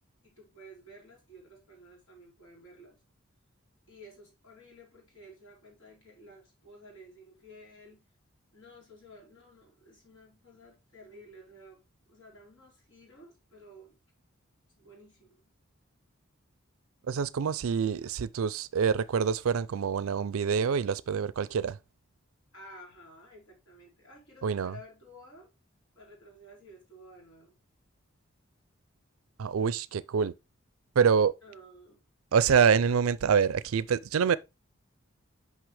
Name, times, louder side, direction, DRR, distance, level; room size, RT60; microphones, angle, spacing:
voice 1, 0.2-3.0 3.9-8.1 8.5-11.8 12.1-14.0 14.7-15.5 22.5-25.5 25.9-27.5 31.4-32.0, equal, 65° left, 3.5 m, -53 dB
voice 2, 17.0-21.8 24.4-24.7 29.4-30.3 31.0-31.4 32.3-34.4, right 6 dB, 80° right, 0.4 m, -26 dB
6.1 x 5.3 x 3.3 m
head